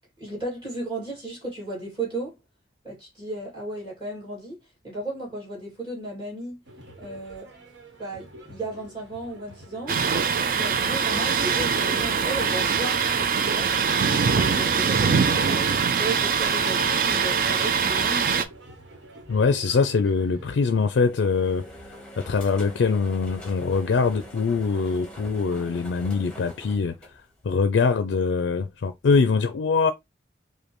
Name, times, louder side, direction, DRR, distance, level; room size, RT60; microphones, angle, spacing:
voice 1, 0.2-2.4 2.8-4.6 4.8-6.6 7.0-7.5 8.0-10.0 10.5-13.8 14.2-15.7 16.0-18.5, right 2 dB, 25° right, 2.3 m, -34 dB
sound 1, 6.7-20.9, right 1 dB, 80° right, 1.1 m, -47 dB
Thunder, 9.9-18.4, right 6 dB, 50° right, 0.4 m, -23 dB
voice 2, 19.3-21.7 22.3-26.9 27.4-29.9, left 4 dB, 85° left, 0.4 m, -23 dB
sound 2, 20.4-27.7, equal, 5° left, 0.9 m, -44 dB
5.1 x 2.2 x 3.0 m
head